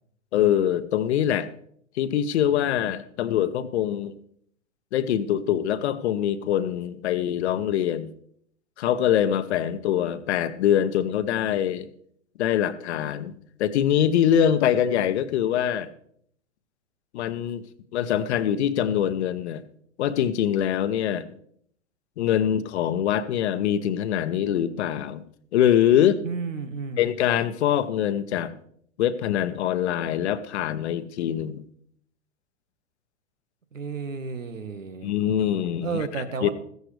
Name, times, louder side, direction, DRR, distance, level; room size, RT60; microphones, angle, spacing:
voice 1, 0.3-1.5 2.0-4.1 4.9-8.1 8.8-11.9 12.4-13.3 13.6-15.9 17.1-17.6 17.9-19.6 20.0-21.3 22.2-25.2 25.5-26.2 27.0-28.5 29.0-31.6 35.0-36.1 36.4-36.5, left 10 dB, 60° left, 12 dB, 1.1 m, -24 dB
voice 2, 26.2-27.1 33.7-35.1 35.8-36.5, right 5 dB, 85° right, 10 dB, 1.6 m, -32 dB
15.0 x 14.5 x 3.4 m, 0.66 s
hypercardioid pair, 105°, 37 cm